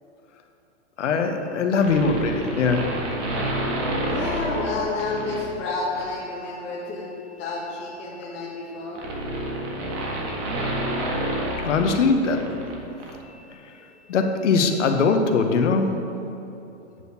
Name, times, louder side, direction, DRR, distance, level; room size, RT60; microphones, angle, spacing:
voice 1, 1.0-2.9 11.6-12.5 14.1-16.0, left 4 dB, 85° left, 5 dB, 1.0 m, -21 dB
sound 1, 1.8-5.5 5.9-6.2 7.4-12.7 13.0-13.1, right 1 dB, 40° right, 1.6 m, -29 dB
voice 2, 4.1-9.0, left 3 dB, 30° left, -5 dB, 2.0 m, -30 dB
9.1 x 4.2 x 6.9 m, 3.0 s
hypercardioid pair, 135°, 35 cm